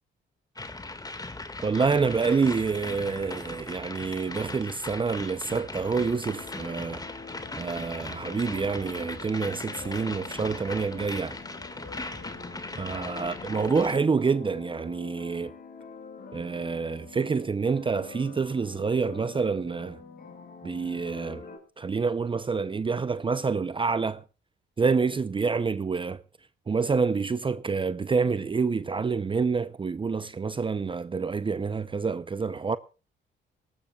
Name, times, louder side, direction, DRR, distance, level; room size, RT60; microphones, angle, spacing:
sound 1, 0.6-14.0, left 2 dB, 20° left, 2.0 m, -39 dB
voice 1, 1.6-7.0 7.6-11.4 12.8-15.5 16.3-20.0 20.6-21.4 21.8-24.2 24.8-26.2 26.7-32.8, right 5 dB, 25° right, 0.7 m, -27 dB
sound 2, 6.3-21.6, left 4 dB, 50° left, 6.0 m, -46 dB
22.5 x 19.0 x 2.4 m
cardioid pair, 90°, 20 cm